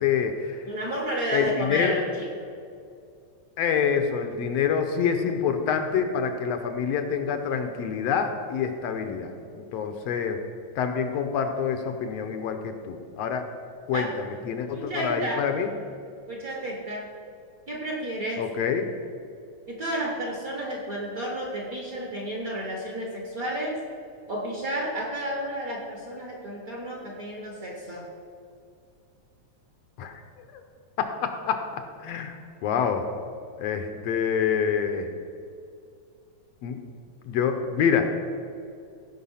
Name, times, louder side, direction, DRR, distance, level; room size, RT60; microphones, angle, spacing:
voice 1, 0.0-0.6 1.3-2.0 3.6-10.4 10.8-13.5 13.9-15.7 18.4-18.9 30.0-30.2 30.5-30.6 31.0-31.6 32.0-32.4 32.6-33.1 33.6-35.1 36.6-36.8 37.3-38.1, left 7 dB, 70° left, 6 dB, 1.8 m, -26 dB
voice 2, 0.7-2.5 13.9-14.1 14.7-15.4 16.3-17.1 17.7-18.4 19.7-23.8 24.3-28.1, right 1 dB, 40° right, -2 dB, 1.3 m, -31 dB
16.0 x 5.6 x 5.6 m, 2.4 s
omnidirectional pair, 3.3 m